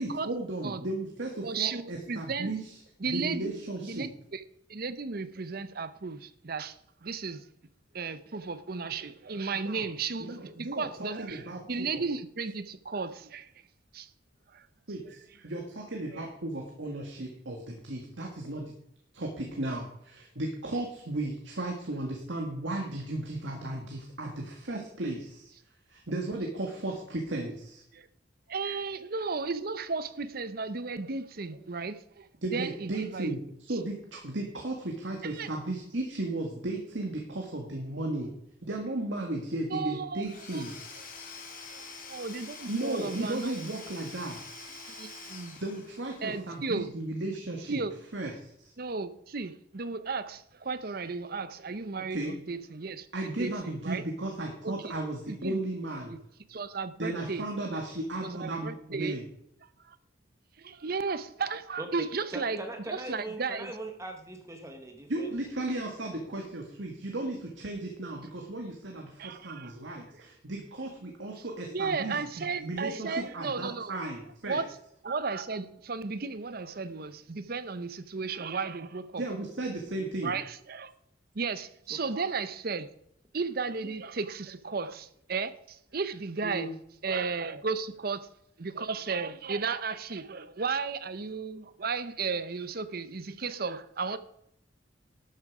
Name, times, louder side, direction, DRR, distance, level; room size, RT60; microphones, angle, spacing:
voice 1, 0.0-2.7 3.1-4.1 8.8-8.9 9.5-9.8 10.2-12.0 14.9-18.6 19.1-25.5 25.9-27.8 28.6-28.7 31.5-31.6 32.4-38.3 38.6-40.7 42.7-44.5 45.6-47.8 48.1-48.7 52.0-52.3 53.1-56.2 57.0-59.3 65.1-72.2 72.6-74.6 79.2-80.3 86.4-86.7, right 2 dB, 75° right, 1 dB, 1.8 m, -35 dB
voice 2, 1.4-2.5 3.0-3.5 3.8-4.4 4.7-6.8 7.0-7.4 7.9-13.5 13.9-14.1 14.5-14.7 15.1-15.2 16.1-16.2 27.9-28.1 28.5-33.3 35.2-35.5 39.7-40.2 40.5-40.6 41.7-43.6 45.0-45.6 46.2-46.9 47.7-47.9 48.8-54.0 54.6-54.9 55.3-55.6 56.1-56.2 56.5-57.5 58.2-59.2 59.9-60.0 60.6-62.6 63.1-63.7 69.2-69.7 71.7-74.0 74.5-74.7 75.0-79.2 80.2-80.9 81.3-82.9 83.3-86.7 87.0-88.3 88.6-94.2, right 4 dB, 55° right, 14 dB, 0.7 m, -34 dB
Domestic sounds home sounds / Tools, 40.2-46.3, left 4 dB, 45° left, 2.5 m, -45 dB
voice 3, 62.3-65.3 81.9-82.0, right 1 dB, 15° right, 5 dB, 1.0 m, -40 dB
12.5 x 8.8 x 4.9 m, 0.74 s
head